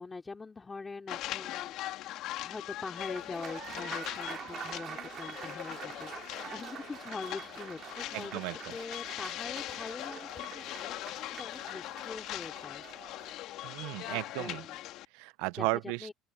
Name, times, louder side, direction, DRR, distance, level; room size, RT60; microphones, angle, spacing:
voice 1, 0.0-12.8 14.1-14.8 15.6-15.7 16.0-16.1, left 4 dB, 20° left, 3.1 m, -44 dB
sound 1, 1.1-15.1, left 15 dB, 70° left, 2.0 m, -41 dB
Applause, 3.0-13.4, right 9 dB, 50° right, 2.1 m, -46 dB
voice 2, 8.1-8.7 13.6-14.6 15.1-16.1, right 24 dB, 80° right, 0.5 m, -35 dB
open air
supercardioid pair, 100°, 0 cm